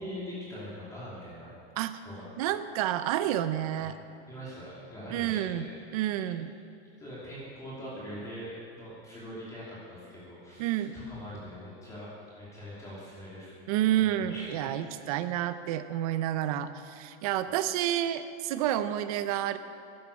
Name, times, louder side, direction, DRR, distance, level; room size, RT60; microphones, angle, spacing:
voice 1, 0.0-1.5 2.0-2.3 3.8-3.9 4.3-6.3 7.0-12.1 12.4-13.5 14.0-14.7 15.0-15.2, equal, 10° left, -8 dB, 2.8 m, -43 dB
voice 2, 2.4-4.0 5.1-5.7 5.9-6.5 10.6-10.9 13.7-19.6, right 12 dB, 35° right, 12 dB, 0.5 m, -29 dB
11.5 x 10.5 x 7.0 m, 2.5 s
supercardioid pair, 170°, 32 cm